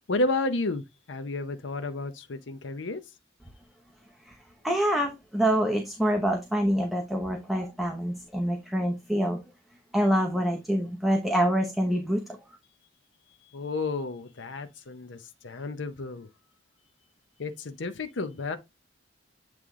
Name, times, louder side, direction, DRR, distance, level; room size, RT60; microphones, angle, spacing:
voice 1, 0.1-3.0 13.5-15.2 15.4-16.3 17.4-18.6, left 2 dB, 75° left, 0.8 m, -31 dB
voice 2, 4.6-9.4 9.9-12.2, equal, ahead, 0.8 m, -26 dB
8.5 x 3.3 x 3.7 m
head